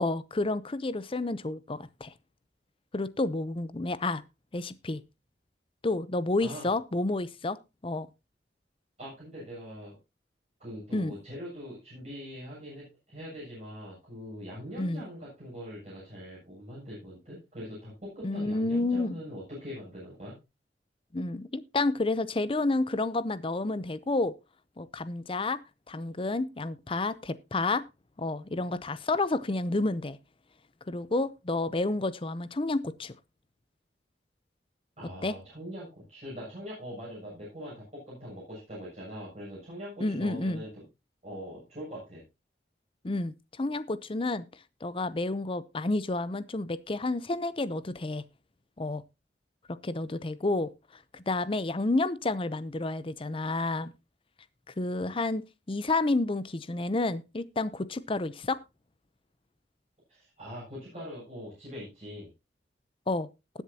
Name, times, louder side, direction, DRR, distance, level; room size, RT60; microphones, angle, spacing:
voice 1, 0.0-2.1 2.9-4.2 4.5-5.0 5.8-7.6 7.8-8.1 10.9-11.1 14.8-15.0 18.2-19.2 21.1-24.3 24.8-25.6 25.9-27.8 28.2-30.2 30.9-33.1 35.2-35.3 40.0-40.6 43.0-44.4 44.8-48.2 48.8-49.0 49.8-50.7 51.1-53.9 54.8-55.4 55.7-58.6 63.1-63.3, left 2 dB, 30° left, 0.6 m, -30 dB
voice 2, 6.4-6.7 9.0-10.0 10.6-20.3 35.0-40.8 41.2-42.2 60.1-62.3, equal, 40° right, 7.6 m, -42 dB
19.5 x 7.2 x 2.8 m
head